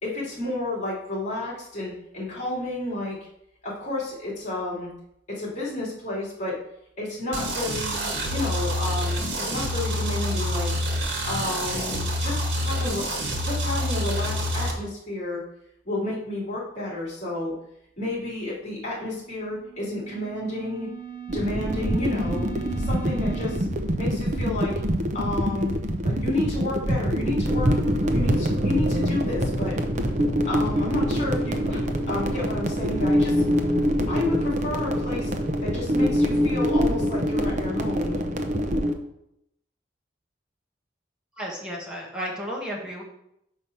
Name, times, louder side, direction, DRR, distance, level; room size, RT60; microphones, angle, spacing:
voice 1, 0.0-3.2 3.6-4.9 5.3-6.6 7.0-10.7 11.2-13.0 13.4-15.4 15.8-17.5 18.0-20.9 21.3-22.4 22.8-23.6 23.9-24.7 25.1-25.7 26.0-27.7 28.1-29.7 30.5-31.8 32.1-33.4 34.1-35.3 35.6-38.2, left 2 dB, 40° left, -5 dB, 2.8 m, -31 dB
sound 1, 7.3-14.7, equal, 75° right, 1.7 m, -27 dB
sound 2, 19.2-23.6, right 8 dB, 25° right, 1.3 m, -39 dB
sound 3, 21.3-38.9, equal, 40° right, 0.7 m, -25 dB
voice 2, 41.4-43.0, equal, 5° right, -3 dB, 1.6 m, -33 dB
5.6 x 4.9 x 5.9 m, 0.78 s
head